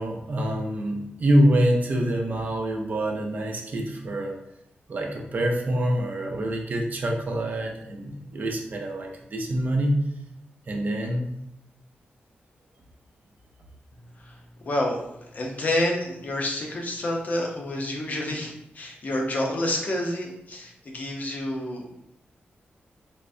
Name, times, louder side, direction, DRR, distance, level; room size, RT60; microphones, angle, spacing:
voice 1, 0.0-4.4 4.9-10.0 10.7-11.3, right 1 dB, 50° right, 2 dB, 0.5 m, -25 dB
voice 2, 14.2-21.9, left 1 dB, 45° left, 0 dB, 0.7 m, -29 dB
3.4 x 3.1 x 2.6 m, 0.78 s
wide cardioid pair, 135°, 4 cm